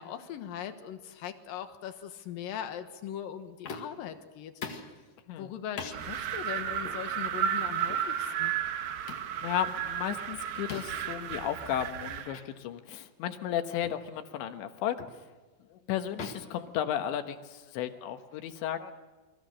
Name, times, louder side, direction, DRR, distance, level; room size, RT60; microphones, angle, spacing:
voice 1, 0.0-4.9 5.4-8.5, left 9 dB, 65° left, 8 dB, 2.6 m, -40 dB
sound 1, 3.6-4.1 4.6-5.0 5.8-6.0 6.8-7.0 7.9-8.1 9.1-9.3 10.7-11.1 12.3-12.5 12.9-13.1 13.8-14.1 15.0-15.2 16.2-17.4, left 5 dB, 45° left, 2.7 m, -42 dB
Wind, 5.9-12.3, right 9 dB, 70° right, 2.9 m, -33 dB
voice 2, 9.1-15.0 15.7-18.9, left 10 dB, 85° left, 7 dB, 3.6 m, -34 dB
29.5 x 23.0 x 6.5 m, 1.2 s
omnidirectional pair, 5.1 m